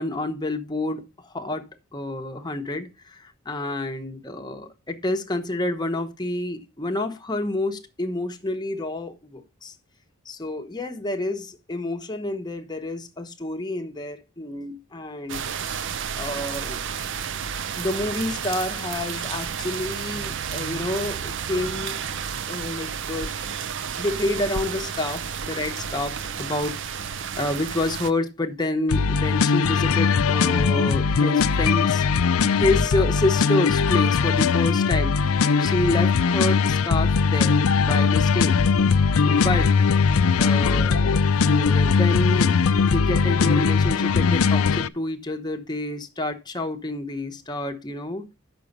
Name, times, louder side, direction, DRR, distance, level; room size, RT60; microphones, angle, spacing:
voice 1, 0.0-1.6 1.9-9.7 10.2-15.5 16.1-16.8 17.8-22.0 22.5-23.3 24.0-32.0 32.5-35.2 35.6-38.6 39.2-39.7 40.4-48.2, left 2 dB, 20° left, 1.1 m, -28 dB
sound 1, 15.3-28.1, right 7 dB, 55° right, 0.6 m, -31 dB
sound 2, 28.9-44.9, left 5 dB, 75° left, 0.5 m, -20 dB
8.4 x 6.3 x 5.2 m
head